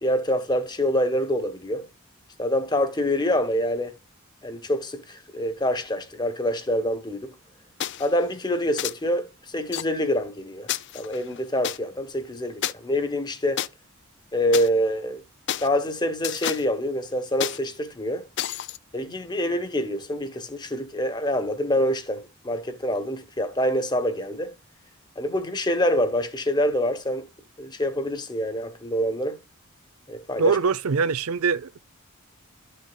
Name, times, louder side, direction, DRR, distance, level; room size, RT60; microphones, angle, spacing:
voice 1, 0.0-1.9 2.4-4.0 4.4-7.3 8.0-10.7 10.9-13.7 14.3-15.2 15.6-18.3 18.9-24.5 25.2-27.3 27.6-29.4 30.1-30.6, equal, 20° left, 1.1 m, -26 dB
sound 1, 7.8-8.1 8.8-8.9 9.7-9.8 10.7-11.8 12.6-12.7 13.6-13.7 14.5-14.7 15.5-15.7 16.2-16.7 17.4-17.6 18.4-18.8, left 11 dB, 55° left, 0.4 m, -30 dB
voice 2, 30.4-31.8, right 5 dB, 80° right, 0.6 m, -23 dB
13.0 x 6.7 x 2.3 m
head